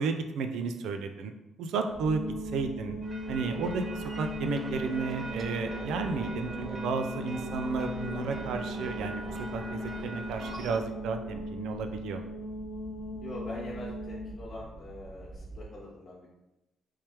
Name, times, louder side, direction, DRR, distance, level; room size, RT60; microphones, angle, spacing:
voice 1, 0.0-1.3 1.6-2.2 2.5-3.0 3.3-12.2, right 4 dB, 80° right, 6 dB, 0.3 m, -33 dB
sound 1, 1.9-15.7, right 2 dB, 10° left, 0.4 m, -48 dB
sound 2, 2.0-14.4, left 1 dB, 80° left, 0.4 m, -38 dB
sound 3, 3.0-10.8, right 2 dB, 30° right, 0.6 m, -41 dB
voice 2, 11.9-12.3 13.2-16.3, left 2 dB, 50° left, -6 dB, 1.1 m, -43 dB
3.3 x 3.1 x 2.9 m, 0.94 s
cardioid pair, 90°, 0 cm